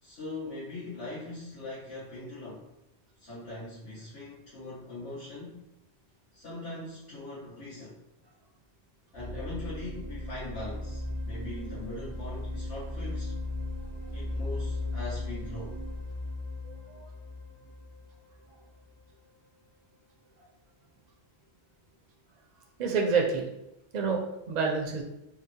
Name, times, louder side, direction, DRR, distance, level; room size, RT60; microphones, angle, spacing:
voice 1, 0.0-2.7 3.2-5.6 6.3-8.0 9.1-13.3 14.1-15.8, left 2 dB, 65° left, -13 dB, 1.8 m, -41 dB
sound 1, 9.1-18.9, left 2 dB, 35° left, 0.5 m, -37 dB
voice 2, 16.6-17.1 22.8-23.5 23.9-25.0, right 5 dB, 50° right, 0 dB, 0.6 m, -28 dB
3.8 x 2.1 x 2.6 m, 0.89 s
omnidirectional pair, 1.1 m